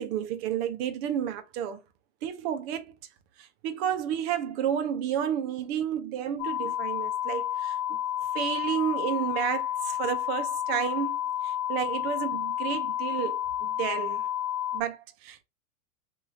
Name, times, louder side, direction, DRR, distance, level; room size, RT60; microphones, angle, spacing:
voice 1, 0.0-1.8 2.2-2.9 3.4-8.0 8.3-14.3 14.7-15.4, right 9 dB, 45° right, 0.8 m, -31 dB
sound 1, 6.4-14.8, left 11 dB, 70° left, 0.6 m, -30 dB
3.1 x 2.7 x 3.6 m
hypercardioid pair, 115°, 43 cm